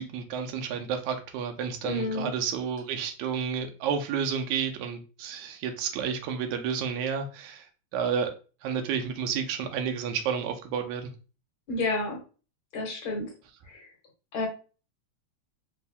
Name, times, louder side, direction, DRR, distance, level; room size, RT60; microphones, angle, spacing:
voice 1, 0.0-7.7 7.9-8.3 8.6-11.1, right 7 dB, 80° right, 2.0 m, -31 dB
voice 2, 1.8-2.3 11.7-12.2 12.7-13.3 13.7-13.9 14.3-14.5, left 2 dB, 50° left, 1.9 m, -30 dB
5.0 x 2.7 x 3.4 m
omnidirectional pair, 3.4 m